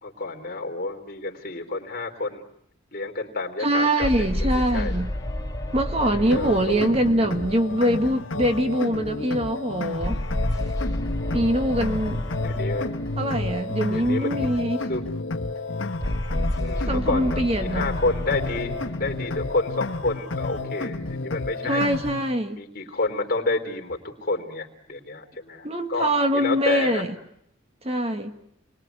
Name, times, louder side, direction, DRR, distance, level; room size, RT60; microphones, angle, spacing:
voice 1, 0.0-2.4 2.9-4.9 6.0-6.9 11.2-11.5 12.4-12.9 13.9-14.5 14.9-15.0 16.6-21.8 22.5-27.0, left 3 dB, 45° left, 3.9 m, -30 dB
voice 2, 3.6-5.1 5.7-10.2 11.3-12.2 13.2-14.9 16.9-17.9 21.6-22.6 25.6-27.1 27.8-28.3, right 1 dB, 30° right, 1.6 m, -23 dB
sound 1, 4.0-8.6 10.0-14.4 16.0-20.6, left 1 dB, 15° left, 5.2 m, -31 dB
sound 2, 6.3-22.3, left 2 dB, 75° left, 1.5 m, -31 dB
29.5 x 21.5 x 9.4 m
head